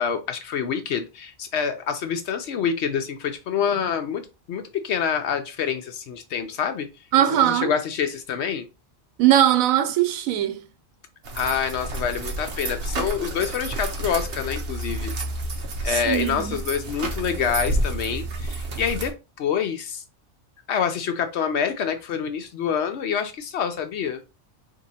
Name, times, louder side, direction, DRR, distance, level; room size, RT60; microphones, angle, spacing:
voice 1, 0.0-6.9 7.3-8.7 11.4-15.1 15.8-20.0 20.7-24.2, left 7 dB, 65° left, 0.8 m, -27 dB
voice 2, 7.1-7.7 9.2-10.7 15.9-16.6, right 11 dB, 90° right, 1.0 m, -20 dB
sound 1, 11.2-19.1, right 2 dB, 55° right, 0.9 m, -30 dB
3.0 x 2.8 x 4.0 m
omnidirectional pair, 1.4 m